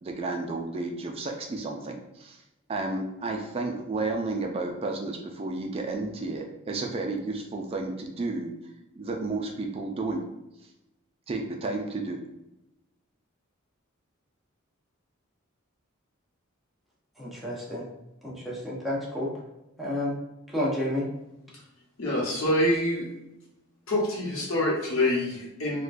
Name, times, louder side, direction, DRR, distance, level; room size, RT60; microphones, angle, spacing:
voice 1, 0.0-2.4 2.7-8.5 9.0-10.2 11.3-12.2, right 3 dB, 30° right, 2 dB, 0.3 m, -32 dB
voice 2, 17.2-17.8 18.2-19.3 19.8-20.1 20.5-21.0, left 1 dB, ahead, -6 dB, 0.7 m, -30 dB
voice 3, 22.0-23.1 23.9-25.8, left 1 dB, 80° left, -3 dB, 1.0 m, -26 dB
3.5 x 2.2 x 2.5 m, 0.93 s
head